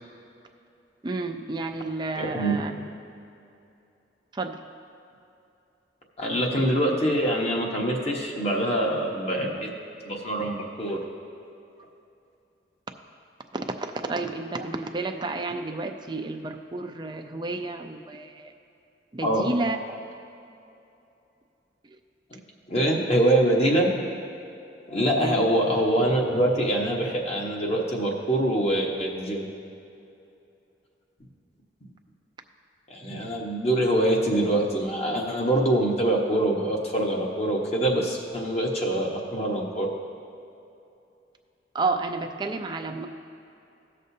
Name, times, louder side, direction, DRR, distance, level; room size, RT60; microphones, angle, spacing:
voice 1, 1.0-2.7 4.3-4.6 13.5-18.5 19.1-20.0 21.9-22.0 22.9-23.0 25.2-25.5 41.7-43.1, right 3 dB, 25° right, 5 dB, 0.5 m, -31 dB
voice 2, 6.2-9.7 10.0-11.0 19.2-19.5 22.7-24.0 24.9-29.5 32.9-39.9, right 1 dB, 35° left, -1 dB, 1.2 m, -24 dB
17.5 x 6.5 x 2.8 m, 2.7 s
head